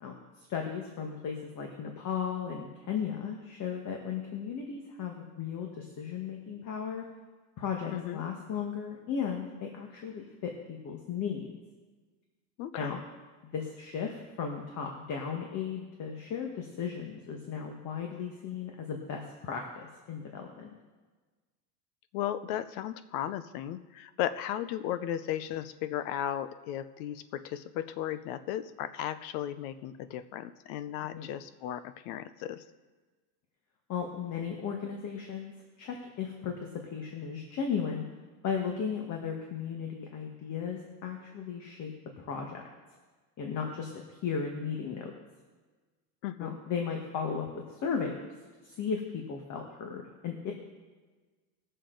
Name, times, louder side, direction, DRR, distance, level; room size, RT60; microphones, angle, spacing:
voice 1, 0.0-7.0 7.6-11.5 12.7-13.0 13.5-20.7 31.1-31.3 33.9-35.5 35.8-38.0 38.4-42.6 43.4-45.1 46.4-48.2 48.6-50.5, left 6 dB, 40° left, 2 dB, 1.5 m, -36 dB
voice 2, 7.9-8.2 12.6-13.0 22.1-32.6 46.2-46.6, left 11 dB, 65° left, 14 dB, 0.8 m, -35 dB
20.0 x 6.7 x 3.9 m, 1.3 s
supercardioid pair, 125°, 47 cm